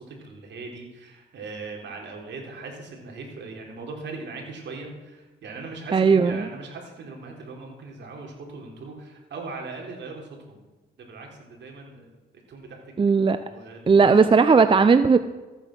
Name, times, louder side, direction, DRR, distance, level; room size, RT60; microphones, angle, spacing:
voice 1, 0.0-10.6 11.0-12.1 12.5-12.9 13.4-14.3, right 3 dB, 65° right, 1 dB, 3.8 m, -39 dB
voice 2, 5.9-6.5 13.0-13.4 13.9-15.2, right 5 dB, 25° right, 11 dB, 0.6 m, -17 dB
14.5 x 9.1 x 6.1 m, 1.2 s
cardioid pair, 90°, 20 cm